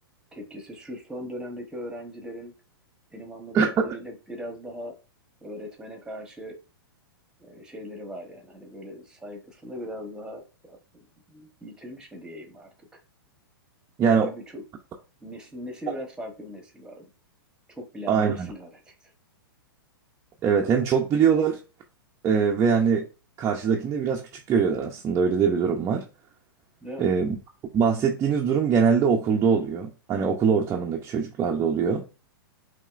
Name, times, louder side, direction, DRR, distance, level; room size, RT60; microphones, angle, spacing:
voice 1, 0.3-2.5 3.1-5.0 5.4-6.6 7.4-10.8 11.3-13.0 14.1-14.6 15.2-17.1 17.7-19.1 26.8-27.1, equal, 5° right, 1.0 m, -39 dB
voice 2, 3.5-3.9 14.0-14.3 18.1-18.5 20.4-21.6 22.2-23.0 23.4-26.0 27.0-27.4 27.7-32.1, right 6 dB, 20° right, 0.6 m, -22 dB
5.4 x 2.9 x 2.4 m
hypercardioid pair, 130°, 13 cm